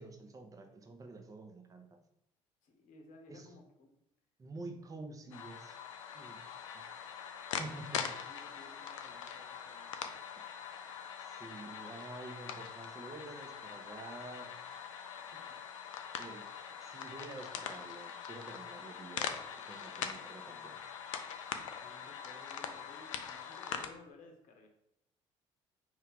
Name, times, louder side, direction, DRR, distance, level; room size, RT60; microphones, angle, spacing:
voice 1, 0.0-1.9 3.3-3.5 4.4-5.8 6.1-6.4 6.7-6.8 7.4-8.0 11.2-14.5 16.2-16.4 16.8-19.4 19.7-20.8, right 2 dB, 20° right, 4 dB, 0.7 m, -48 dB
voice 2, 2.6-3.9 8.3-9.9 15.2-15.6 21.8-24.7, left 3 dB, 50° left, 4 dB, 1.0 m, -57 dB
sound 1, 5.3-23.9, left 7 dB, 75° left, 0.4 m, -43 dB
4.6 x 2.7 x 3.5 m, 0.78 s
figure-of-eight pair, 50°, 16 cm